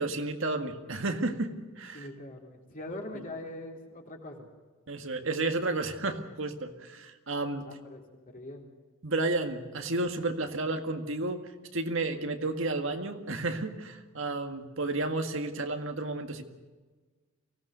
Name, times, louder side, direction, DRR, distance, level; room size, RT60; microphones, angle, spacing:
voice 1, 0.0-2.1 4.9-7.7 9.0-16.4, right 2 dB, 65° right, 6 dB, 1.8 m, -32 dB
voice 2, 1.9-4.5 7.6-8.7, left 1 dB, 40° left, 1 dB, 3.7 m, -42 dB
24.0 x 17.5 x 6.7 m, 1.3 s
head